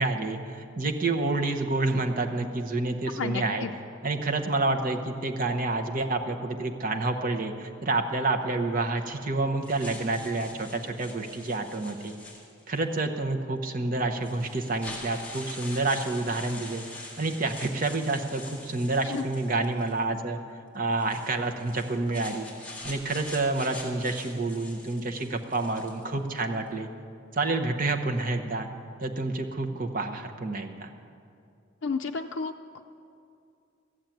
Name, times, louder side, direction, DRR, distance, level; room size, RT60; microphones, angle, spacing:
voice 1, 0.0-3.7 4.0-12.1 12.7-16.8 17.2-20.4 20.7-22.5 22.8-26.9 27.3-28.7 29.0-30.9, right 2 dB, 45° right, 5 dB, 0.9 m, -28 dB
voice 2, 3.2-3.7 19.1-19.2 31.8-32.8, left 4 dB, 70° left, 4 dB, 0.4 m, -32 dB
sound 1, 9.6-12.8 13.7-13.8 14.2-20.0 20.9-26.1, left 2 dB, 5° left, 1.9 m, -44 dB
14.5 x 7.3 x 9.1 m, 2.5 s
head